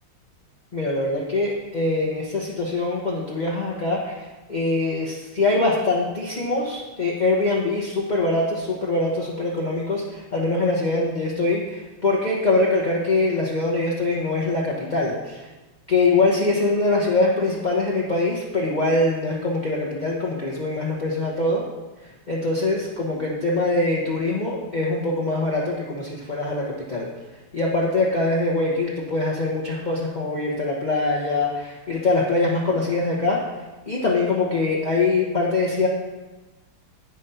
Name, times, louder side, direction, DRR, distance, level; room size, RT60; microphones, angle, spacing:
voice 1, 0.7-15.5 15.9-21.6 22.0-27.1 27.5-33.4 33.9-35.9, left 2 dB, 35° left, -5 dB, 0.7 m, -23 dB
9.0 x 6.2 x 5.6 m, 1.2 s
omnidirectional pair, 2.4 m